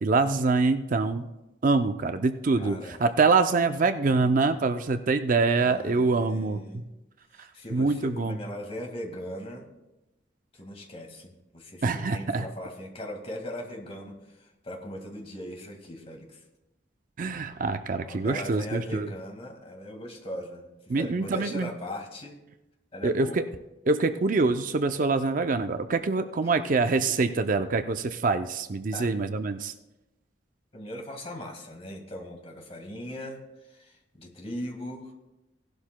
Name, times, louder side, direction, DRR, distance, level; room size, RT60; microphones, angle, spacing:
voice 1, 0.0-1.2 1.6-6.6 7.7-8.4 11.8-12.5 17.2-19.1 20.9-21.7 23.0-23.4 23.9-29.7, right 3 dB, 45° right, 9 dB, 0.5 m, -25 dB
voice 2, 2.6-3.0 5.6-6.9 7.3-9.7 10.5-16.4 18.0-22.4 22.9-23.4 26.4-26.7 28.9-29.1 30.7-35.1, left 1 dB, 30° left, 3 dB, 1.8 m, -39 dB
17.0 x 12.0 x 2.2 m, 0.99 s
head